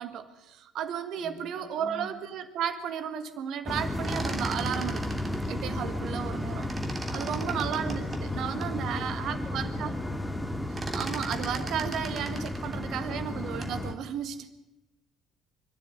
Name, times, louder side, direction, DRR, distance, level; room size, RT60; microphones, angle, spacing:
voice 1, 0.0-5.1 5.4-6.7 7.1-9.9 10.9-14.5, right 9 dB, 55° right, 10 dB, 1.6 m, -34 dB
voice 2, 1.2-2.2 7.6-8.2 8.8-10.4, left 1 dB, 30° left, 1 dB, 4.0 m, -45 dB
sound 1, 3.7-13.9, left 1 dB, 5° left, 2.3 m, -33 dB
sound 2, 3.8-6.4 6.6-8.8 9.3-9.4 9.6-10.0 10.3-13.8, right 3 dB, 25° right, 3.1 m, -40 dB
25.0 x 12.5 x 9.3 m, 0.99 s
figure-of-eight pair, 50°, 0 cm